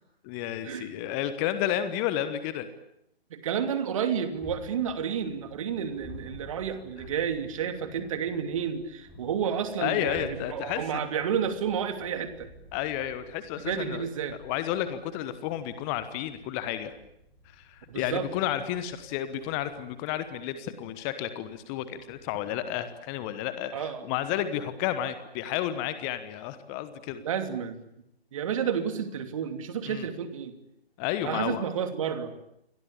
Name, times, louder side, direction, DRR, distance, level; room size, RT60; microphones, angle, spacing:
voice 1, 0.2-2.7 9.8-11.0 12.7-14.1 14.4-16.9 17.5-27.2 29.9-30.1 31.0-31.6, left 11 dB, 15° left, 12 dB, 1.2 m, -31 dB
voice 2, 3.3-12.5 13.7-14.4 17.9-18.2 23.7-24.0 27.2-27.8 28.3-30.5 31.2-32.3, right 8 dB, 30° right, 9 dB, 2.9 m, -31 dB
sound 1, 4.3-23.9, left 2 dB, ahead, 6.7 m, -52 dB
29.0 x 23.5 x 8.6 m, 0.78 s
figure-of-eight pair, 140°, 31 cm